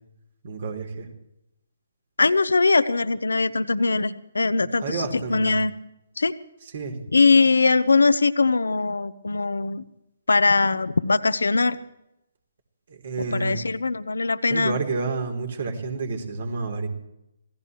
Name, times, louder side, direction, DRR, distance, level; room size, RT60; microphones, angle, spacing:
voice 1, 0.4-1.1 4.8-5.5 6.7-7.0 12.9-13.6 14.5-16.9, right 4 dB, 55° right, 4 dB, 3.4 m, -29 dB
voice 2, 2.2-5.7 6.2-6.3 7.1-9.8 10.3-11.8 13.3-14.8, left 3 dB, 75° left, 14 dB, 0.9 m, -21 dB
26.5 x 17.5 x 3.2 m, 0.85 s
figure-of-eight pair, 135°, 0 cm